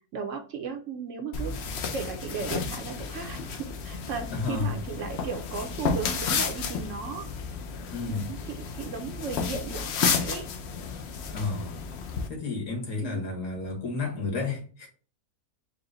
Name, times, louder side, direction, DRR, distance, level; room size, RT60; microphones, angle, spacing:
voice 1, 0.1-1.5 1.9-7.3 8.1-10.5 13.0-13.3, right 5 dB, 65° right, 0.9 m, -36 dB
sound 1, 1.3-12.3, left 5 dB, 60° left, 0.7 m, -32 dB
voice 2, 4.3-4.7 7.9-8.3 11.3-11.8 12.3-14.9, left 4 dB, 80° left, 1.9 m, -31 dB
4.8 x 2.1 x 3.7 m
omnidirectional pair, 1.6 m